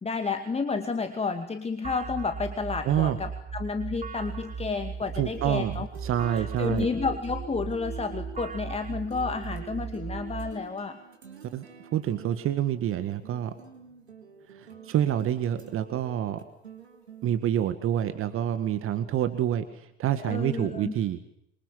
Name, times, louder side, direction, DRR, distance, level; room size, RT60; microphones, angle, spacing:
voice 1, 0.0-5.9 6.3-11.0 20.2-20.9, left 4 dB, 20° left, 8 dB, 2.4 m, -31 dB
sound 1, 1.8-10.5, right 5 dB, 25° right, 2.9 m, -37 dB
voice 2, 2.9-3.2 5.1-6.9 11.5-11.7 11.9-13.5 14.6-16.4 17.2-21.2, right 10 dB, 40° right, 10 dB, 1.9 m, -27 dB
sound 2, 4.2-17.3, right 6 dB, 75° right, 4.0 m, -47 dB
27.5 x 25.0 x 7.6 m, 0.78 s
figure-of-eight pair, 70°, 32 cm